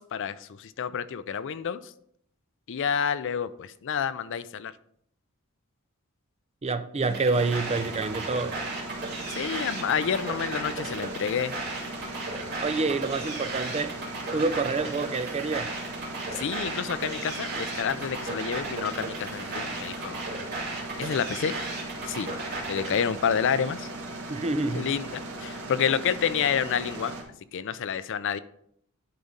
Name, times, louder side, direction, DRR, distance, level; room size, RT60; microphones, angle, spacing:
voice 1, 0.0-1.9 2.7-4.7 9.4-11.5 16.3-20.3 21.0-21.6 22.1-22.3 22.6-23.9 24.7-27.1 27.5-28.4, left 7 dB, 55° left, 0.4 m, -29 dB
voice 2, 6.6-8.6 12.6-14.0 14.3-15.7 24.3-24.9, right 3 dB, 30° right, 0.4 m, -27 dB
sound 1, 7.0-23.0, right 3 dB, 45° right, 2.5 m, -35 dB
sound 2, 7.3-27.2, right 2 dB, 75° right, 1.8 m, -38 dB
10.5 x 4.1 x 5.1 m
head